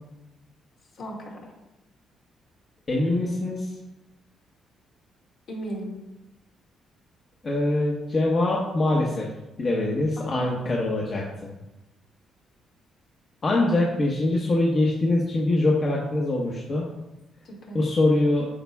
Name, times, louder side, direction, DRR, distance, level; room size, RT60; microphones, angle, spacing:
voice 1, 0.9-1.5 5.5-6.0 10.2-10.9 17.4-17.8, right 1 dB, 65° left, -2 dB, 2.2 m, -37 dB
voice 2, 2.9-3.7 7.4-9.3 9.6-11.5 13.4-16.9 17.7-18.5, left 2 dB, 45° left, -3 dB, 1.1 m, -23 dB
8.9 x 5.2 x 2.4 m, 0.97 s
cardioid pair, 90°, 0 cm